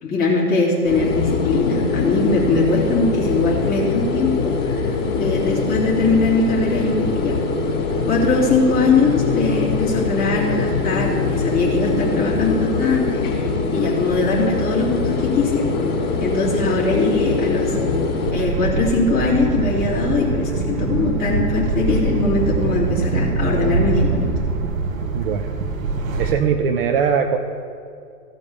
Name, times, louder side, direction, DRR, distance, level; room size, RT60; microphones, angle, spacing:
voice 1, 0.0-7.4 8.1-15.6 16.2-17.8 18.3-24.3, left 3 dB, 20° left, -6 dB, 3.1 m, -21 dB
sound 1, 0.8-18.3, left 4 dB, 55° left, 3.2 m, -23 dB
sound 2, 18.3-26.3, right 3 dB, 60° right, 1.3 m, -23 dB
voice 2, 25.1-25.5 26.2-27.4, right 7 dB, 40° right, 6 dB, 0.6 m, -20 dB
15.0 x 5.3 x 6.8 m, 2.4 s
hypercardioid pair, 135°, 44 cm